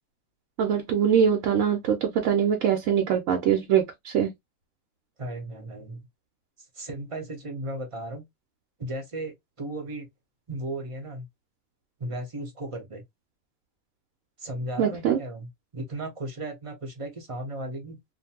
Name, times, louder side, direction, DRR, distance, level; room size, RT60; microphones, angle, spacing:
voice 1, 0.6-4.3 14.8-15.2, right 8 dB, 70° right, 1.0 m, -23 dB
voice 2, 5.2-6.0 6.7-8.2 8.8-10.1 10.5-11.3 12.0-13.0 14.4-18.0, right 1 dB, 30° right, 0.7 m, -35 dB
2.6 x 2.5 x 2.7 m
omnidirectional pair, 1.5 m